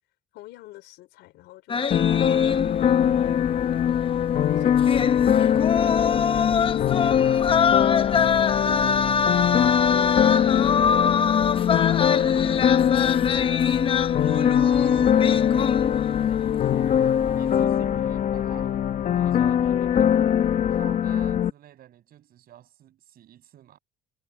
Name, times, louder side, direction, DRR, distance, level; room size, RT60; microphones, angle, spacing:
voice 1, 0.3-3.3 4.5-5.2 6.1-9.1 9.5-13.8 14.1-14.3, left 17 dB, 85° left, 4.6 m, -46 dB
sound 1, 1.7-3.1 3.4-3.5 4.8-16.2 16.5-16.9, left 6 dB, 30° left, 0.9 m, -24 dB
sound 2, 1.9-21.5, left 9 dB, 50° left, 1.2 m, -22 dB
voice 2, 3.0-3.4 4.8-6.0 12.0-12.1 14.2-17.1 17.4-18.9 19.1-20.1 20.7-23.8, right 11 dB, 60° right, 6.7 m, -47 dB
cardioid pair, 110°, 17 cm